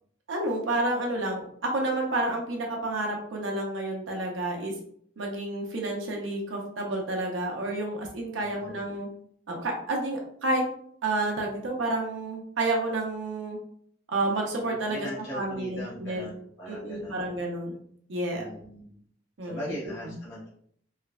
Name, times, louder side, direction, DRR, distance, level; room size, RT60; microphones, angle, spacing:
voice 1, 0.3-4.7 5.2-9.1 9.5-10.6 11.0-13.6 14.1-16.3 16.7-17.8 18.1-18.4 19.4-19.7 20.1-20.2, right 2 dB, 85° right, 0 dB, 0.7 m, -30 dB
voice 2, 8.4-8.8 14.6-17.3 18.3-19.0 19.4-20.5, equal, 65° left, -7 dB, 0.7 m, -40 dB
3.1 x 2.0 x 2.4 m, 0.64 s
head